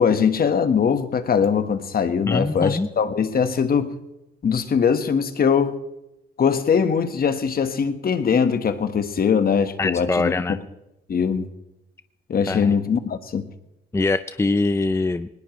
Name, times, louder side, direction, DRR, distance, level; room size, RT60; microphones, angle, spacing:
voice 1, 0.0-4.0 4.4-5.8 6.4-10.3 11.1-11.5 12.3-13.5, left 6 dB, 50° left, 1.5 m, -21 dB
voice 2, 2.3-2.9 9.8-10.6 12.5-12.7 13.9-15.3, left 3 dB, 15° left, 0.6 m, -23 dB
19.5 x 19.0 x 3.2 m
cardioid pair, 90°, 20 cm